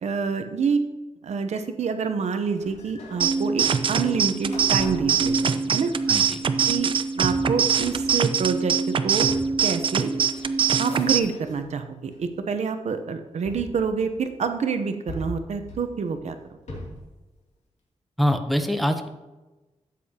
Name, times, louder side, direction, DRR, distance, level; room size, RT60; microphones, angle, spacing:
voice 1, 0.0-0.8 1.2-5.9 6.7-9.3 9.6-10.1 10.8-16.4, right 5 dB, 75° right, 8 dB, 0.8 m, -27 dB
sound 1, 2.5-11.7 12.1-12.7 13.5-14.5 15.1-17.1, left 1 dB, 75° left, 2.7 m, -41 dB
sound 2, 3.2-11.2, right 6 dB, 45° right, 0.5 m, -23 dB
voice 2, 6.1-6.4 18.2-19.1, equal, ahead, 6 dB, 0.7 m, -24 dB
12.5 x 8.5 x 2.9 m, 1.1 s
wide cardioid pair, 160°, 12 cm